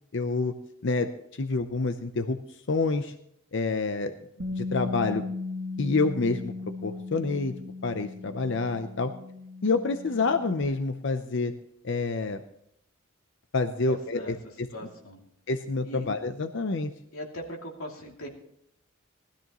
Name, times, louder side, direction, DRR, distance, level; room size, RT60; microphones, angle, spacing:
voice 1, 0.1-0.5 0.8-2.4 2.7-3.1 3.5-4.2 4.6-5.2 5.8-6.5 6.8-7.5 7.8-9.1 9.6-11.5 11.8-12.4 13.5-14.7 15.5-16.9, left 3 dB, 55° left, 8 dB, 0.7 m, -27 dB
Bass guitar, 4.4-10.6, left 3 dB, 55° right, 1.9 m, -37 dB
voice 2, 13.9-14.3 14.7-15.2 15.8-16.1 17.1-18.3, equal, 90° left, 0 dB, 2.7 m, -40 dB
19.5 x 13.0 x 3.0 m, 0.74 s
head